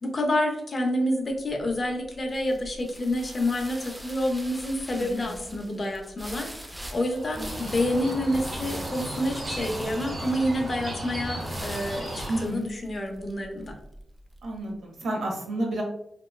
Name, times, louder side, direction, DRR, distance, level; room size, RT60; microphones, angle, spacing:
voice 1, 0.0-13.8, left 1 dB, 40° left, 2 dB, 0.5 m, -28 dB
sound 1, 1.5-14.6, equal, 10° right, 0.4 m, -43 dB
voice 2, 5.0-5.4 7.4-7.5 12.3-12.7 14.4-15.8, right 1 dB, 90° right, 0 dB, 0.7 m, -31 dB
sound 2, 7.1-12.4, right 1 dB, 45° right, 0.9 m, -35 dB
2.9 x 2.1 x 2.2 m, 0.76 s
cardioid pair, 85°, 0 cm